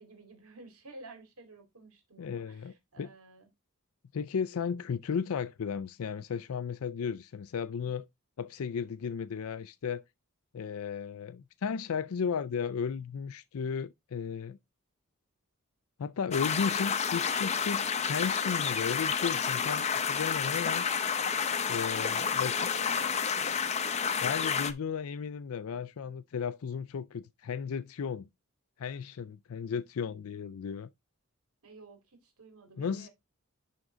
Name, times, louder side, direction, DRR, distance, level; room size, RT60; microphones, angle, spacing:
voice 1, 0.0-3.5 22.2-23.8 31.6-33.1, right 3 dB, 85° right, 2.7 m, -52 dB
voice 2, 2.2-3.1 4.1-8.1 8.4-10.0 10.5-14.6 16.0-20.8 21.7-22.5 24.2-28.3 28.8-30.9 32.8-33.1, left 6 dB, 80° left, 0.4 m, -34 dB
sound 1, 16.3-24.7, left 6 dB, 30° left, 0.6 m, -30 dB
11.0 x 3.7 x 3.8 m
head